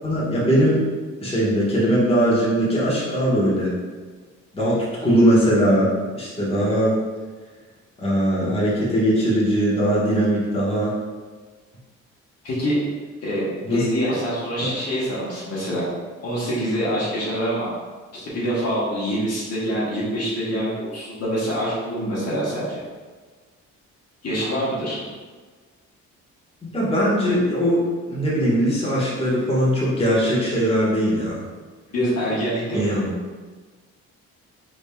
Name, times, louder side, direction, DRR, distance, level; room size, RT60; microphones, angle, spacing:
voice 1, 0.0-0.8 1.2-3.8 4.5-5.9 6.1-6.9 8.0-10.9 13.6-13.9 26.6-31.4 32.7-33.1, equal, 20° left, -8 dB, 1.3 m, -20 dB
voice 2, 12.4-12.8 13.2-13.4 13.7-15.9 16.2-17.7 18.1-22.8 24.2-25.0 31.9-32.9, equal, 55° left, -7 dB, 1.3 m, -25 dB
3.9 x 3.6 x 2.3 m, 1.4 s
cardioid pair, 90°, 30 cm